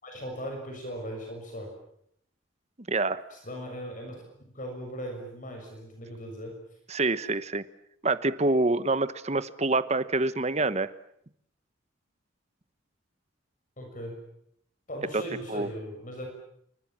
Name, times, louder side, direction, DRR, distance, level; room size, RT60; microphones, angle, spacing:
voice 1, 0.0-1.8 3.3-4.2 4.5-6.6 13.8-14.2 14.9-16.3, equal, 40° left, 2 dB, 6.5 m, -38 dB
voice 2, 2.9-3.2 6.9-7.6 8.0-10.9 15.1-15.2 15.5-15.7, right 2 dB, 35° right, 14 dB, 1.1 m, -26 dB
28.5 x 25.0 x 7.5 m, 0.70 s
head